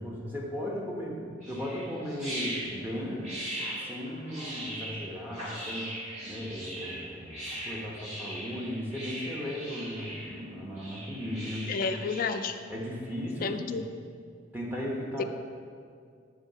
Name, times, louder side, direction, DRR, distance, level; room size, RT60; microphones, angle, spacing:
voice 1, 0.0-3.3 3.7-5.9 6.2-12.0 12.7-13.7 14.5-15.2, equal, 10° right, -3 dB, 0.9 m, -36 dB
sound 1, 1.4-12.4, right 1 dB, 35° right, 1.8 m, -39 dB
voice 2, 11.7-12.5 13.4-13.9 15.2-15.3, left 5 dB, 45° left, 8 dB, 0.3 m, -31 dB
7.2 x 3.6 x 5.5 m, 2.2 s
head